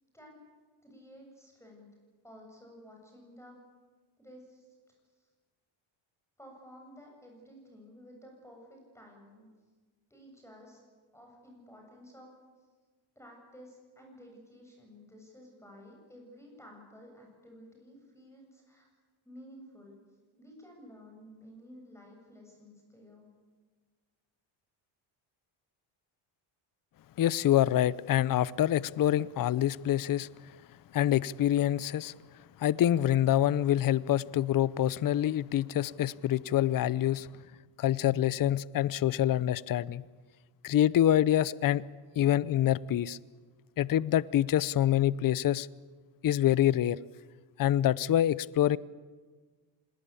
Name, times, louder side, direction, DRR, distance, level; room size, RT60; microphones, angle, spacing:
voice 1, 0.8-1.9 2.2-3.6 4.2-4.7 5.2-5.3 6.4-9.5 10.1-10.8 11.1-12.3 13.2-18.9 19.2-20.0 20.4-23.3, equal, 5° left, 7.7 m, -53 dB
voice 2, 27.2-30.3 30.9-32.1 32.6-37.3 37.8-40.0 40.6-41.8 42.2-43.2 43.8-45.7 46.2-47.0 47.6-48.8, left 12 dB, 40° left, 0.7 m, -26 dB
26.0 x 21.0 x 8.5 m
cardioid pair, 95°, 50 cm